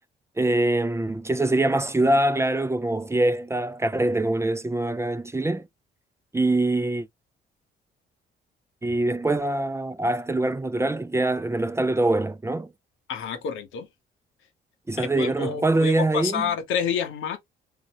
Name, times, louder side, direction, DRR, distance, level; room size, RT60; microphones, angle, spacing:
voice 1, 0.4-5.7 6.3-7.1 8.8-12.7 14.9-16.5, right 2 dB, 15° right, 0.5 m, -24 dB
voice 2, 13.1-13.9 15.0-17.4, left 7 dB, 90° left, 1.3 m, -29 dB
3.8 x 3.6 x 3.0 m
cardioid pair, 90°, 20 cm